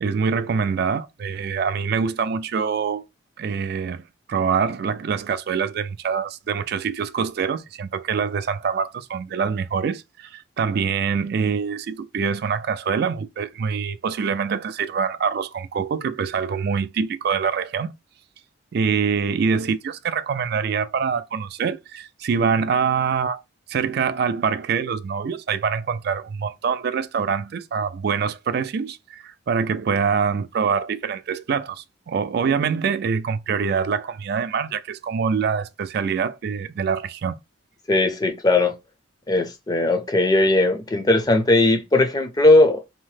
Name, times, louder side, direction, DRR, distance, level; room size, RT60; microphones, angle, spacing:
voice 1, 0.0-3.0 3.4-17.9 18.7-23.4 23.7-37.4, right 6 dB, 55° right, 0.3 m, -25 dB
voice 2, 37.9-38.8 39.3-42.8, left 2 dB, 20° left, 0.5 m, -18 dB
2.7 x 2.0 x 3.1 m
head